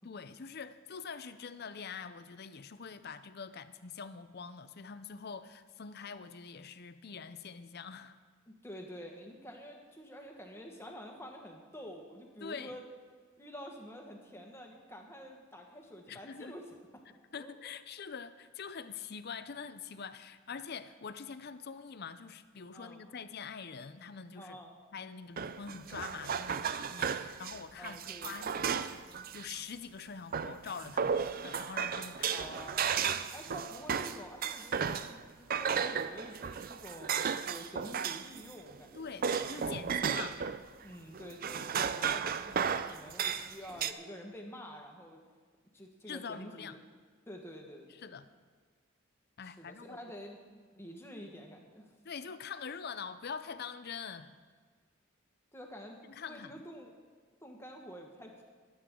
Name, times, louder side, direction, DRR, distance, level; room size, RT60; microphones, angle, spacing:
voice 1, 0.0-8.2 12.4-12.8 16.1-16.5 17.3-24.6 24.9-29.0 29.3-32.5 38.9-40.4 46.1-46.8 47.9-48.3 49.4-50.2 52.0-54.3 56.1-56.6, left 6 dB, 50° left, 12 dB, 0.6 m, -44 dB
voice 2, 8.5-12.8 13.4-16.7 17.4-17.7 22.7-23.1 24.4-24.7 27.8-28.9 32.3-32.9 33.3-39.2 40.8-45.2 45.7-46.8 47.3-48.1 49.4-51.9 55.5-56.9 57.4-58.4, equal, 10° left, 1 dB, 1.4 m, -48 dB
sound 1, 25.4-29.6 30.3-35.2 35.5-38.4 38.7-40.6 41.1-43.9, right 7 dB, 45° right, 0.4 m, -34 dB
22.0 x 8.7 x 3.8 m, 1.6 s
head